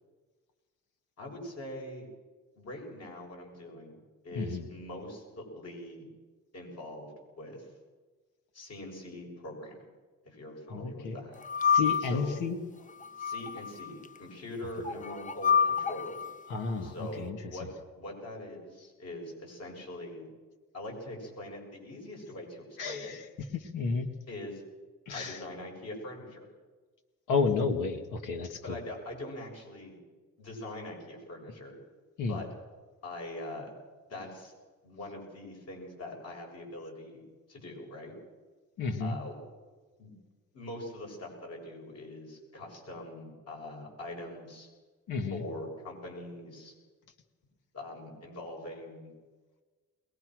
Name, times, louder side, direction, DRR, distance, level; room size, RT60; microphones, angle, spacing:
voice 1, 1.2-2.1 2.6-3.9 4.2-6.1 6.5-7.7 8.5-9.8 10.2-11.4 12.0-12.4 13.2-16.2 16.8-17.7 18.0-20.3 20.7-23.1 24.3-24.6 25.1-26.5 28.6-30.0 30.4-31.8 32.3-32.5 33.0-33.7 34.1-34.5 34.8-38.1 39.0-39.4 40.0-40.2 40.5-44.7 45.3-46.7 47.7-49.1, left 1 dB, 55° left, 1 dB, 7.4 m, -43 dB
voice 2, 10.7-11.2 11.7-12.6 16.5-17.4 22.8-24.1 25.1-25.4 27.3-28.8 32.2-32.4 38.8-39.2 45.1-45.4, left 4 dB, 85° left, 6 dB, 2.1 m, -31 dB
sound 1, 11.4-12.3 13.0-13.9 14.8-16.3, left 7 dB, 25° left, 0.7 m, -28 dB
21.5 x 20.5 x 6.3 m, 1.3 s
cardioid pair, 90°, 30 cm